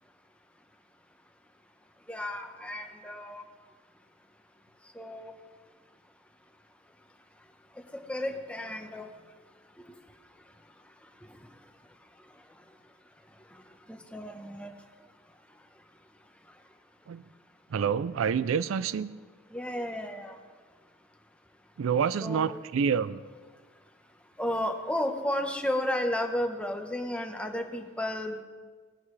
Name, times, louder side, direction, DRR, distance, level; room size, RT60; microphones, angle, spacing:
voice 1, 2.1-3.4 4.9-5.3 7.9-9.1 13.9-14.7 19.5-20.4 22.2-22.6 24.4-28.4, left 1 dB, 5° left, 4 dB, 1.0 m, -33 dB
voice 2, 17.7-19.1 21.8-23.2, right 6 dB, 85° right, 16 dB, 0.4 m, -27 dB
19.5 x 11.0 x 3.3 m, 1.5 s
head